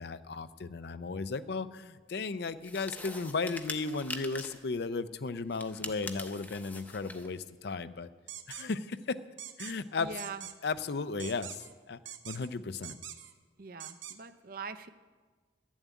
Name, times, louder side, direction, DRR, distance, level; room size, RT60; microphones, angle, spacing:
voice 1, 0.0-8.1 8.5-9.2 9.6-10.2 10.6-12.0 12.2-13.0, left 4 dB, 60° left, 13 dB, 0.5 m, -35 dB
sound 1, 2.6-4.7 5.5-7.3, left 2 dB, 10° left, 0.7 m, -43 dB
sound 2, 8.3-8.6 9.4-9.7 10.2-10.5 11.2-11.7 12.0-12.5 12.8-13.3 13.8-14.2, right 10 dB, 85° right, 0.9 m, -44 dB
voice 2, 10.0-10.4 13.6-14.9, right 5 dB, 50° right, 11 dB, 0.6 m, -42 dB
12.5 x 7.3 x 9.2 m, 1.4 s
head